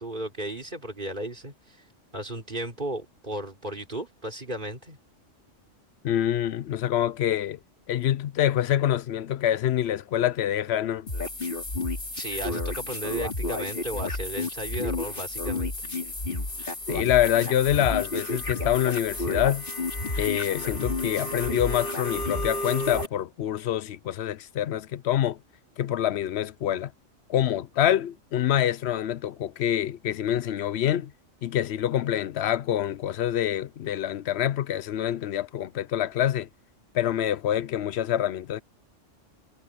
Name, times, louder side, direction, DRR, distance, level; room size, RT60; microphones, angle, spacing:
voice 1, 0.0-1.8 2.1-5.0 12.2-15.7, right 1 dB, 40° right, 3.9 m, -35 dB
voice 2, 6.0-7.6 7.9-11.1 16.9-19.6 20.2-25.4 25.8-26.9 27.3-31.1 31.4-36.5 36.9-38.6, left 11 dB, 65° left, 0.8 m, -26 dB
sound 1, 11.1-23.1, left 2 dB, 45° left, 3.3 m, -31 dB
omnidirectional pair, 1.3 m